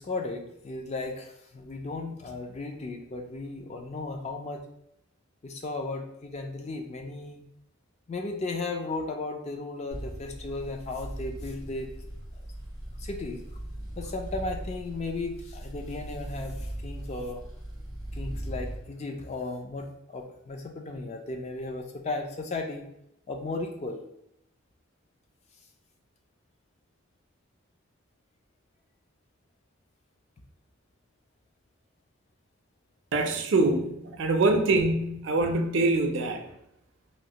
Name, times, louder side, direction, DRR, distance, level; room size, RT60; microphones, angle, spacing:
voice 1, 0.0-4.6 5.4-7.4 8.1-11.9 13.0-13.4 14.0-17.4 18.1-22.8 23.3-24.0, left 2 dB, 30° left, 4 dB, 0.3 m, -35 dB
sound 1, 9.9-18.8, right 1 dB, 80° left, 1.3 m, -39 dB
voice 2, 33.1-36.4, right 2 dB, 60° right, 5 dB, 0.4 m, -24 dB
3.0 x 2.4 x 2.8 m, 0.79 s
head